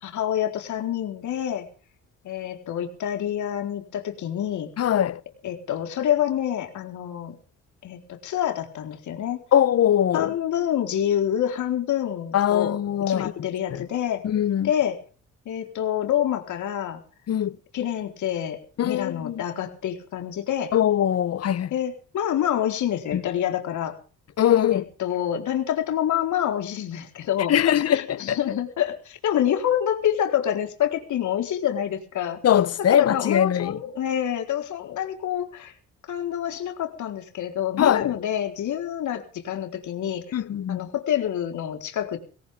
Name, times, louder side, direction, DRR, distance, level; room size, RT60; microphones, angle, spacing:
voice 1, 0.0-1.7 2.2-4.7 5.4-7.4 7.8-9.4 10.1-12.8 13.1-14.2 14.6-15.0 15.5-17.0 17.7-20.7 21.7-23.9 24.7-32.4 32.8-35.7 36.1-40.4 40.7-42.2, left 10 dB, 75° left, 4.3 m, -27 dB
voice 2, 4.8-5.2 9.5-10.3 12.3-13.8 14.2-14.7 17.3-17.6 18.8-19.4 20.7-21.7 23.1-23.2 24.4-24.8 27.5-28.4 32.4-33.8 37.8-38.1 40.3-40.8, left 10 dB, 55° left, 0.9 m, -22 dB
20.5 x 18.0 x 3.7 m
cardioid pair, 90°, 30 cm